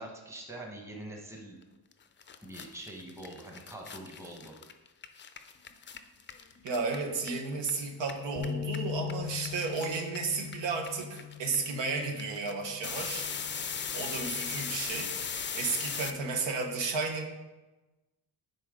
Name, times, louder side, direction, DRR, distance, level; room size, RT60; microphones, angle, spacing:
voice 1, 0.0-1.6 2.4-4.5, right 1 dB, 5° right, 1 dB, 1.0 m, -44 dB
sound 1, 1.9-2.0 2.2-7.7 8.0-16.1, left 7 dB, 30° left, 0.4 m, -38 dB
voice 2, 6.6-13.3 13.9-15.1 15.5-17.2, right 4 dB, 90° right, 3 dB, 1.2 m, -33 dB
sound 2, 8.4-14.6, left 8 dB, 45° right, 1.6 m, -41 dB
9.9 x 4.3 x 3.7 m, 1.1 s
cardioid pair, 130°, 43 cm